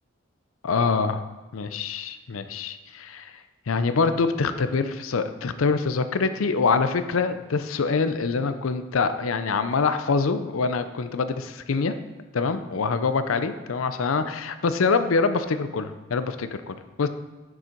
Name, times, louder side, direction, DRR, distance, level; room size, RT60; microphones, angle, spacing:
voice 1, 0.6-1.2 1.5-3.3 3.7-11.9 12.3-17.1, left 4 dB, 80° left, 11 dB, 0.5 m, -25 dB
7.2 x 6.3 x 4.5 m, 1.2 s
head